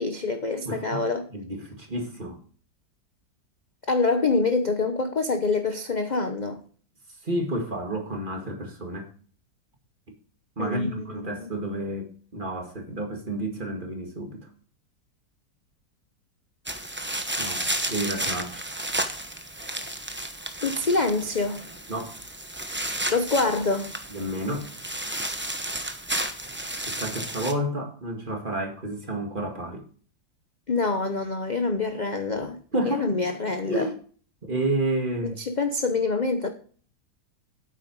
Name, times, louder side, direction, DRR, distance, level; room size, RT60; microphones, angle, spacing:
voice 1, 0.0-1.2 3.9-6.6 10.6-11.5 20.6-21.6 23.1-23.9 30.7-32.6 32.8-33.9 35.2-36.5, left 3 dB, 35° left, 0.8 m, -26 dB
voice 2, 0.7-1.1 1.3-2.4 7.2-9.1 10.6-14.5 17.4-18.7 21.9-22.2 24.1-24.7 26.9-29.8 32.7-33.1 33.7-33.9 34.4-35.4, right 1 dB, 30° right, 2.0 m, -30 dB
sound 1, 16.7-27.5, right 1 dB, 10° right, 0.6 m, -32 dB
9.0 x 8.4 x 4.7 m
omnidirectional pair, 1.8 m